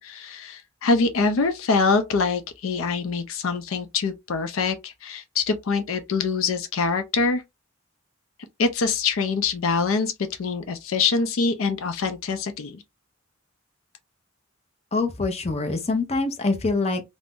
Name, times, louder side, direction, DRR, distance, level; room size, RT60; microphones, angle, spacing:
voice 1, 0.0-7.4 8.6-10.1 10.4-12.8, left 4 dB, 80° left, 0.5 m, -24 dB
voice 2, 14.9-17.0, left 3 dB, 30° left, 0.6 m, -24 dB
2.5 x 2.0 x 3.5 m
head